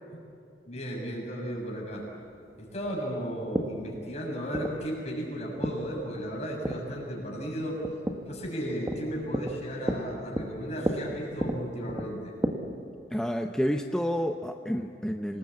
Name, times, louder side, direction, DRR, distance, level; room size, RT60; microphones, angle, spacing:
voice 1, 0.7-2.0 2.6-7.8 8.3-12.3, equal, 40° left, -1 dB, 7.0 m, -35 dB
sound 1, 1.5-12.5, equal, 15° right, 1.5 m, -35 dB
voice 2, 13.1-15.4, equal, 5° left, 4 dB, 0.7 m, -29 dB
26.5 x 20.0 x 8.6 m, 2.5 s
head